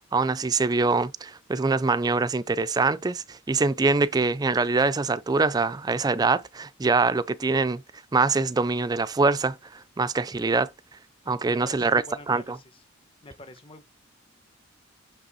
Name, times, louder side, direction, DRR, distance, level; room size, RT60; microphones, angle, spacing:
voice 1, 0.1-7.8 8.1-10.7 11.3-12.6, right 3 dB, 20° right, 0.4 m, -24 dB
voice 2, 11.2-12.8 13.2-13.8, left 2 dB, 25° left, 1.1 m, -46 dB
6.0 x 5.2 x 4.2 m
head